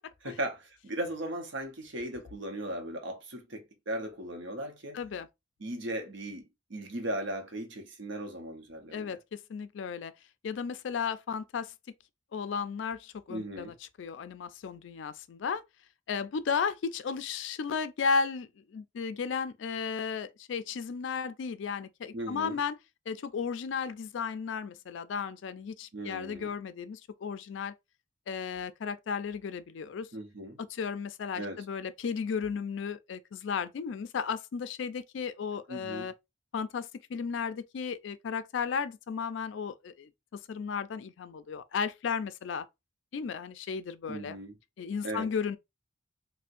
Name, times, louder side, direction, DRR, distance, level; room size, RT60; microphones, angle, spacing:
voice 1, 0.2-5.0 5.6-9.2 13.3-13.7 22.1-22.6 25.9-26.5 30.1-30.6 31.3-31.6 35.7-36.1 44.1-44.5 45.0-45.3, right 1 dB, 65° right, 0.8 m, -37 dB
voice 2, 4.9-5.3 8.9-10.1 10.4-11.7 12.3-15.6 16.1-22.8 23.1-27.7 28.3-30.1 30.6-36.1 36.5-42.7 43.1-44.4 44.8-45.6, left 6 dB, 65° left, 0.4 m, -34 dB
4.3 x 2.1 x 2.5 m
head